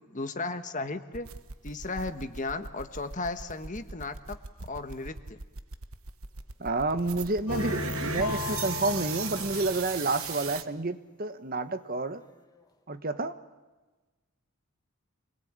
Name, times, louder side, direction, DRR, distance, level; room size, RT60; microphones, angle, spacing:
voice 1, 0.1-1.3 1.6-4.4 4.7-5.4, left 3 dB, 35° left, 9 dB, 1.4 m, -35 dB
sound 1, 1.1-10.6, right 6 dB, 70° right, 1.2 m, -38 dB
voice 2, 6.6-12.2 12.9-13.4, right 2 dB, 40° right, 10 dB, 1.1 m, -30 dB
sound 2, 7.0-7.3 8.0-10.7 12.1-12.8, left 5 dB, 15° left, 1.5 m, -47 dB
sound 3, 7.5-10.6, left 3 dB, 85° left, 2.1 m, -36 dB
27.0 x 21.0 x 8.8 m, 1.2 s
head